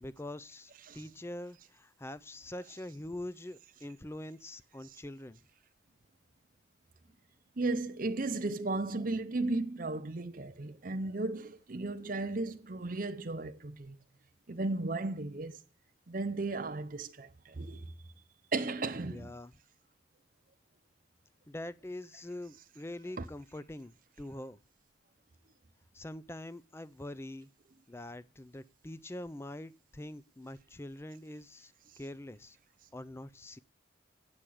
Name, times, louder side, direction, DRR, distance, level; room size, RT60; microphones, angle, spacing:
voice 1, 0.0-5.4 19.0-19.5 21.5-24.6 25.9-27.5 27.9-32.6 32.9-33.6, left 1 dB, 15° left, 0.5 m, -44 dB
voice 2, 7.6-14.0 14.5-15.6 16.1-17.9 18.5-19.3 23.2-23.3, right 2 dB, 45° right, 0.7 m, -35 dB
8.9 x 6.3 x 8.5 m
head